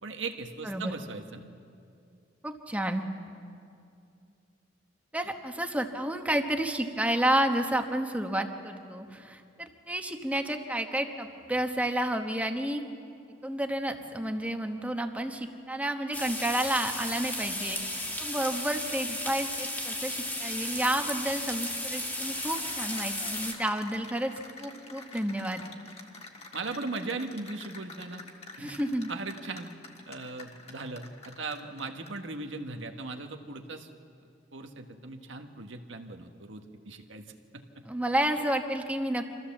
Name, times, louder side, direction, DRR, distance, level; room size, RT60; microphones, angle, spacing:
voice 1, 0.0-1.4 26.5-28.2 28.6-28.7 29.1-29.7 30.1-33.9 34.5-37.3 37.5-37.8, right 3 dB, 85° right, 5 dB, 1.4 m, -38 dB
voice 2, 2.4-3.0 5.1-12.8 13.4-24.3 24.6-25.6 28.6-29.1 37.8-39.3, right 1 dB, 10° right, 5 dB, 1.1 m, -30 dB
sound 1, 16.1-23.5, left 1 dB, 10° left, 1.9 m, -34 dB
Cheering / Applause, 22.0-32.3, left 3 dB, 35° left, 1.6 m, -48 dB
25.5 x 14.0 x 7.3 m, 2.5 s
head